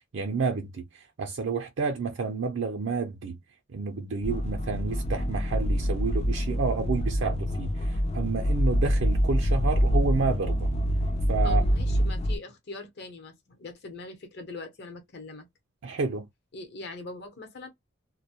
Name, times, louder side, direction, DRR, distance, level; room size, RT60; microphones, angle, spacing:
voice 1, 0.1-3.4 3.7-10.7 11.3-11.6 15.8-16.3, right 4 dB, 60° right, 0.4 m, -30 dB
sound 1, 4.2-12.4, equal, 30° left, 0.3 m, -26 dB
voice 2, 11.4-15.5 16.5-17.7, left 3 dB, 55° left, 0.8 m, -42 dB
2.1 x 2.1 x 2.7 m
head